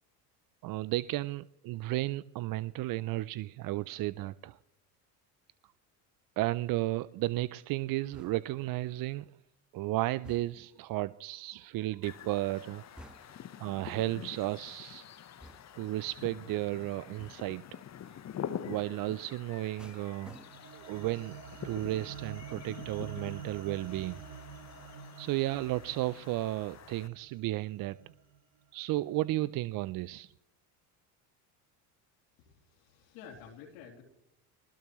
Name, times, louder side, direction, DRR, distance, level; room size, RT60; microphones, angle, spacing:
voice 1, 0.6-4.6 6.4-9.2 9.7-13.1 13.6-15.0 15.8-17.8 18.6-20.4 20.7-21.4 21.6-24.2 25.2-28.0 28.7-30.3, right 17 dB, 45° right, 18 dB, 0.5 m, -33 dB
sound 1, 8.1-8.7 10.2-10.8 13.0-13.6 15.4-16.0 17.2-17.6 19.8-20.9 21.3-21.7, equal, ahead, 1.3 m, -54 dB
sound 2, 12.0-27.1, left 9 dB, 35° left, 1.1 m, -46 dB
sound 3, 19.9-28.4, right 7 dB, 60° right, 2.7 m, -47 dB
voice 2, 32.4-34.0, left 7 dB, 75° left, -3 dB, 3.1 m, -51 dB
21.5 x 20.0 x 3.1 m, 0.83 s
hypercardioid pair, 80°, 47 cm